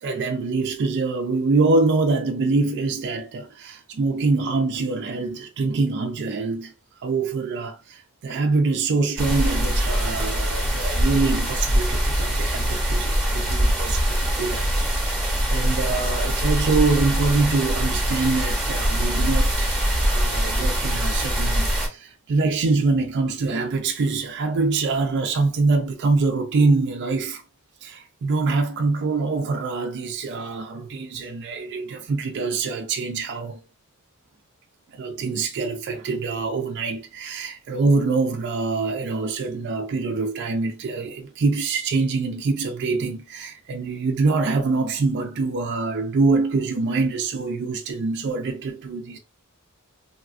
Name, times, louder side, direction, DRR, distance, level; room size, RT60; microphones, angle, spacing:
voice 1, 0.0-6.7 7.0-14.7 14.9-27.4 27.8-33.6 34.9-49.2, right 3 dB, 50° right, 0.3 m, -24 dB
sound 1, 9.2-21.9, equal, ahead, 0.8 m, -23 dB
3.2 x 2.4 x 2.3 m
head